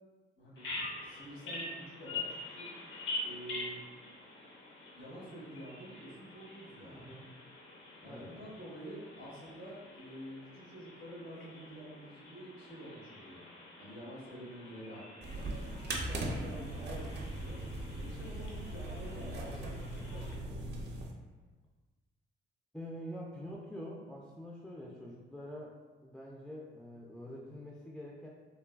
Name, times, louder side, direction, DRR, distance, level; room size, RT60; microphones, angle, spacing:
voice 1, 0.4-0.7 1.0-2.7 3.2-3.8 4.9-7.1 8.0-13.4 13.8-15.5 16.0-17.6 18.0-21.0, equal, 85° left, -9 dB, 1.5 m, -48 dB
Bird vocalization bird call bird song, 0.6-20.4, left 2 dB, 65° left, 0.6 m, -46 dB
voice 2, 6.9-7.3 8.0-8.4 22.7-28.3, equal, ahead, -3 dB, 0.3 m, -46 dB
sound 1, 15.2-21.1, right 1 dB, 55° right, 0.5 m, -39 dB
3.2 x 2.1 x 2.2 m, 1.3 s
cardioid pair, 90°, 20 cm